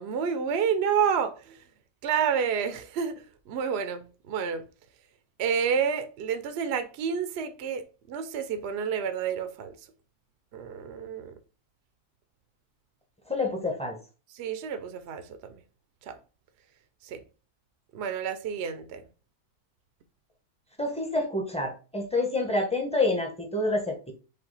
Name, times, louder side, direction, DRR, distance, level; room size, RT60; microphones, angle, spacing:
voice 1, 0.0-1.6 2.0-4.6 5.4-9.7 10.5-11.4 14.4-15.6 16.0-16.2 17.0-17.2 17.9-19.0, right 7 dB, 70° right, 0.6 m, -29 dB
voice 2, 13.3-14.0 20.8-24.1, left 2 dB, 5° left, 0.6 m, -28 dB
5.3 x 2.2 x 3.9 m
omnidirectional pair, 1.6 m